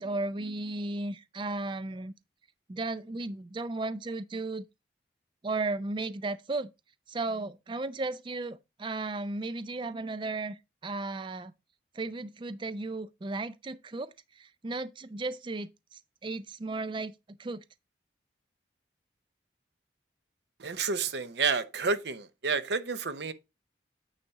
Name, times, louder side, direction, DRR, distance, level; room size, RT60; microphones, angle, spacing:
voice 1, 0.0-2.1 2.7-4.7 5.4-6.7 7.1-11.5 11.9-17.6, right 2 dB, 25° right, 0.4 m, -35 dB
voice 2, 20.6-23.3, right 5 dB, 70° right, 0.8 m, -30 dB
8.9 x 4.1 x 4.6 m
head